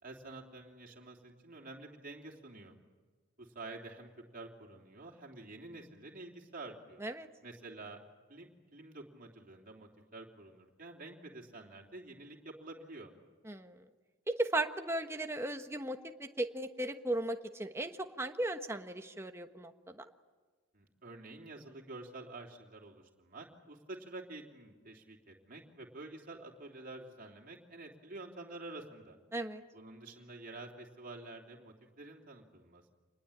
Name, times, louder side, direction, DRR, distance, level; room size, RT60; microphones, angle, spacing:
voice 1, 0.0-2.7 3.4-7.0 7.4-8.0 8.3-13.1 20.7-29.2 29.7-32.9, right 2 dB, 45° right, -1 dB, 3.3 m, -49 dB
voice 2, 13.4-13.9 14.3-20.0 29.3-29.6, right 1 dB, 15° right, 6 dB, 1.2 m, -36 dB
27.0 x 20.5 x 8.8 m, 1.4 s
head